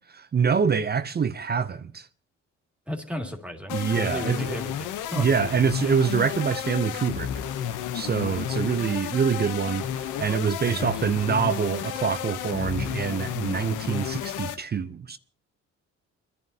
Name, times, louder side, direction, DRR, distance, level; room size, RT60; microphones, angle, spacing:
voice 1, 0.3-2.1 3.7-4.6 5.2-7.4 7.9-15.2, right 6 dB, 35° right, 0.6 m, -25 dB
voice 2, 2.9-5.3 10.6-11.1, left 1 dB, 5° right, 2.3 m, -34 dB
sound 1, 3.7-14.6, left 10 dB, 90° left, 0.9 m, -32 dB
29.5 x 11.0 x 2.8 m
cardioid pair, 90°, 30 cm